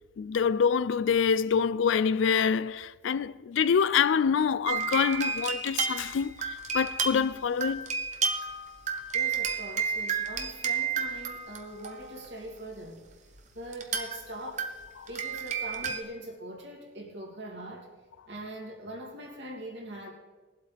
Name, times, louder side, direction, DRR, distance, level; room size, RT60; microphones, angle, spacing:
voice 1, 0.2-7.9 15.0-15.1, left 6 dB, 75° left, 0.4 m, -26 dB
sound 1, 4.7-12.4 13.7-14.2 14.6-16.0, right 6 dB, 35° right, 0.9 m, -31 dB
voice 2, 9.1-13.0 13.5-14.7 15.1-17.9 18.3-20.1, right 1 dB, 60° right, 2.8 m, -42 dB
21.0 x 8.0 x 3.4 m
head